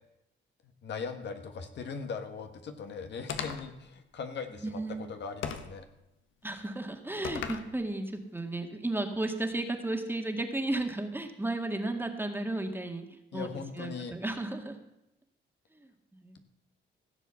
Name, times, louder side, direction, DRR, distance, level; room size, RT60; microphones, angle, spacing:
voice 1, 0.8-5.9 13.3-14.1, left 5 dB, 60° left, 6 dB, 1.5 m, -39 dB
sound 1, 3.3-3.8 5.4-5.8 7.2-7.7, left 7 dB, 80° left, 1.3 m, -36 dB
voice 2, 4.6-5.1 6.4-13.1 13.3-13.5 13.8-14.8 16.1-16.4, right 2 dB, 10° right, 4 dB, 1.9 m, -34 dB
16.0 x 7.4 x 7.0 m, 0.89 s
cardioid pair, 90°, 20 cm